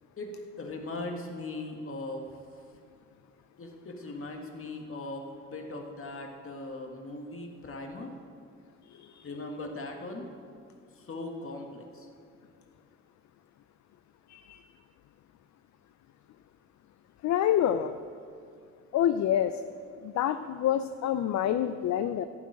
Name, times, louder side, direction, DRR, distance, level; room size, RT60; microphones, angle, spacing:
voice 1, 0.2-2.3 3.6-8.1 9.2-10.3 11.0-12.1, left 2 dB, 50° left, 2 dB, 2.0 m, -39 dB
voice 2, 17.2-17.9 18.9-19.6 20.0-22.3, left 10 dB, 70° left, 11 dB, 0.5 m, -27 dB
11.0 x 6.0 x 8.7 m, 2.4 s
cardioid pair, 80°, 29 cm